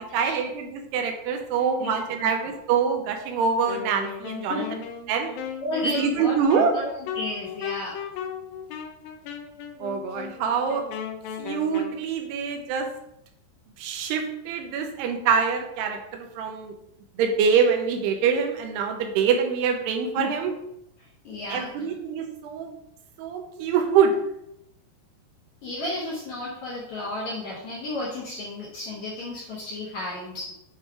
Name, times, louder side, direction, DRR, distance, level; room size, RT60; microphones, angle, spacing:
voice 1, 0.1-4.8 5.1-5.3 5.8-6.7 9.8-10.8 11.4-12.9 13.8-16.8 17.2-20.5 21.5-22.7 23.2-24.1, right 6 dB, 85° right, 4 dB, 2.8 m, -25 dB
voice 2, 1.8-2.3 4.5-4.8 5.6-6.5 6.7-6.9 7.2-8.0 20.2-20.6 21.0-21.7 25.6-30.5, left 2 dB, 65° left, -5 dB, 1.9 m, -33 dB
Wind instrument woodwind instrument, 3.7-12.0, left 8 dB, 80° left, 2.1 m, -36 dB
7.9 x 3.2 x 4.8 m, 0.79 s
omnidirectional pair, 4.8 m